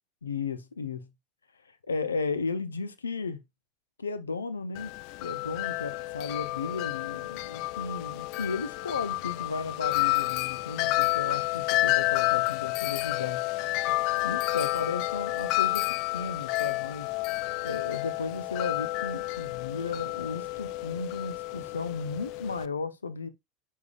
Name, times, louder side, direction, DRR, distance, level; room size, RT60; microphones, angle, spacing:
voice 1, 0.2-1.1 1.7-3.4 4.0-4.9 5.2-13.4 13.9-14.0 14.2-15.9 16.1-17.1 17.6-23.3, left 4 dB, 80° left, 0.7 m, -34 dB
Wind chime, 4.8-22.7, left 20 dB, 55° left, 0.3 m, -30 dB
10.5 x 3.7 x 2.4 m
figure-of-eight pair, 75°, 0 cm